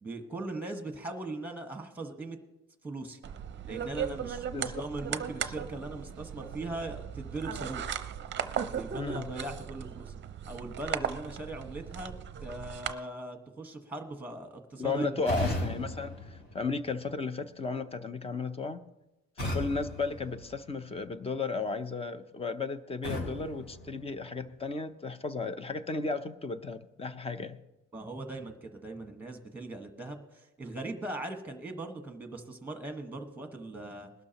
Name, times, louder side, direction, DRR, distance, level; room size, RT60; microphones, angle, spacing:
voice 1, 0.0-2.4 2.8-3.3 3.6-7.9 8.7-10.1 10.4-12.1 12.4-15.3 27.9-34.1, right 2 dB, 5° right, 5 dB, 1.4 m, -40 dB
sound 1, 3.2-12.9, right 8 dB, 35° right, 0.7 m, -37 dB
voice 2, 9.0-9.3 14.8-16.1 16.5-18.8 19.4-27.6, left 3 dB, 20° left, 11 dB, 0.6 m, -34 dB
sound 2, 15.2-17.2 19.4-21.1 23.0-24.6, left 1 dB, 45° left, 4.8 m, -37 dB
20.5 x 12.0 x 3.0 m, 0.96 s
cardioid pair, 145°, 32 cm